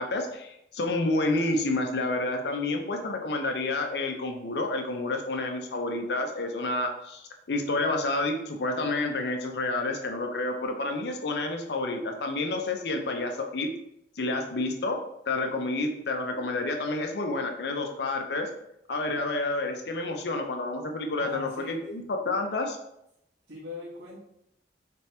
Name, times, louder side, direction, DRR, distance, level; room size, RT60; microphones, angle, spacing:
voice 1, 0.0-13.7 14.2-15.0 15.3-18.5 18.9-22.8, left 2 dB, 65° left, 4 dB, 0.6 m, -29 dB
voice 2, 21.2-21.8 23.5-24.2, left 2 dB, 80° right, -7 dB, 1.5 m, -40 dB
3.4 x 2.9 x 3.2 m, 0.80 s
head